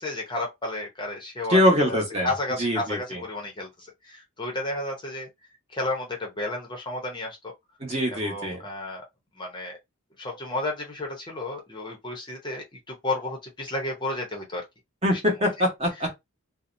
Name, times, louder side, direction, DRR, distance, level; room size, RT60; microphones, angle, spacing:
voice 1, 0.0-5.3 5.7-7.5 8.2-9.0 9.4-9.8 10.2-14.6 15.1-15.2, left 2 dB, 20° left, 0.7 m, -32 dB
voice 2, 1.5-2.3 2.6-3.2 7.8-8.6 15.0-16.1, equal, 30° right, 1.0 m, -23 dB
2.7 x 2.0 x 2.5 m
head